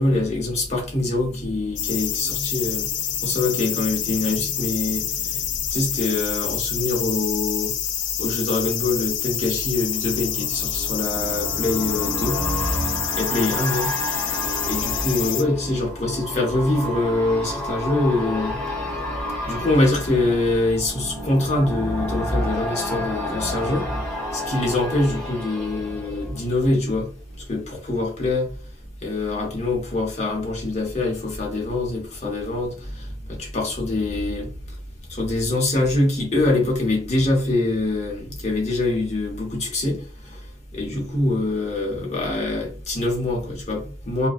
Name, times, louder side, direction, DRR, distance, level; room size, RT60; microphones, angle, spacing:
voice 1, 0.0-5.4 5.7-7.7 8.2-12.4 13.1-13.9 14.7-18.6 19.5-23.9 24.3-27.1 27.5-28.5 29.0-34.5 35.1-40.0 40.7-44.3, left 2 dB, 40° left, 0.8 m, -24 dB
sound 1, 1.8-15.4, left 10 dB, 80° left, 0.3 m, -27 dB
sound 2, 9.2-27.0 27.4-27.5, equal, 5° left, 0.8 m, -30 dB
2.5 x 2.1 x 2.4 m
head